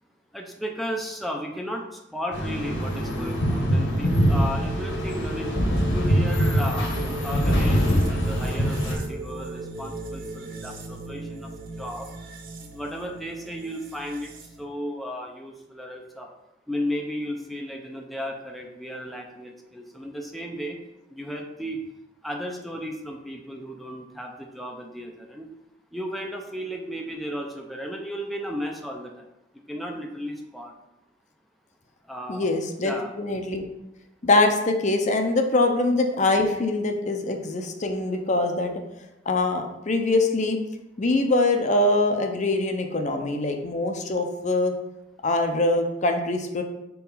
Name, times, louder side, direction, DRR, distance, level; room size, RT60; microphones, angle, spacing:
voice 1, 0.3-5.5 5.9-6.9 7.2-11.5 11.8-12.1 12.6-14.3 14.6-16.3 16.7-20.8 21.1-21.8 22.2-25.5 25.9-29.3 29.7-30.7 32.1-32.5 32.8-33.1, equal, ahead, 1 dB, 0.5 m, -34 dB
sound 1, 2.3-9.0, equal, 70° left, 1.4 m, -23 dB
sound 2, 2.3-14.6, right 2 dB, 50° right, 0.9 m, -37 dB
voice 2, 32.3-33.6 34.2-38.8 39.3-40.6 41.0-44.7 45.2-46.6, left 2 dB, 40° left, 4 dB, 0.7 m, -23 dB
4.6 x 4.1 x 5.5 m, 0.91 s
head